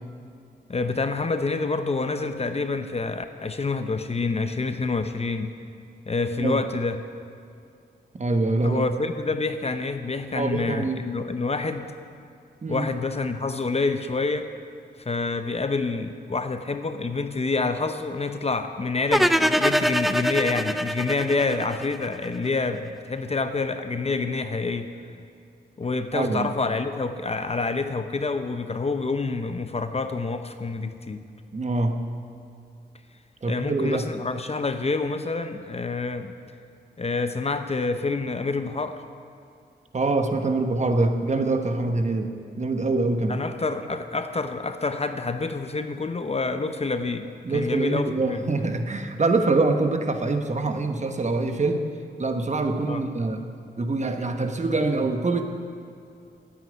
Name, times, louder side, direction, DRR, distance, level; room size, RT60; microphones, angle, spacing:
voice 1, 0.7-5.5 6.1-7.0 8.6-11.9 12.7-14.5 15.0-24.9 25.8-31.2 33.5-36.3 37.0-39.0 43.3-48.4 52.9-53.1, left 3 dB, 35° left, 8 dB, 0.8 m, -27 dB
voice 2, 8.2-8.8 10.3-11.0 12.6-12.9 26.1-26.5 31.5-32.0 33.4-34.1 39.9-43.4 47.4-51.9 52.2-53.4 53.8-55.4, right 3 dB, 40° right, 6 dB, 1.2 m, -24 dB
sound 1, 19.1-22.3, equal, ahead, 0.4 m, -23 dB
9.1 x 8.7 x 9.6 m, 2.5 s
cardioid pair, 60°, 19 cm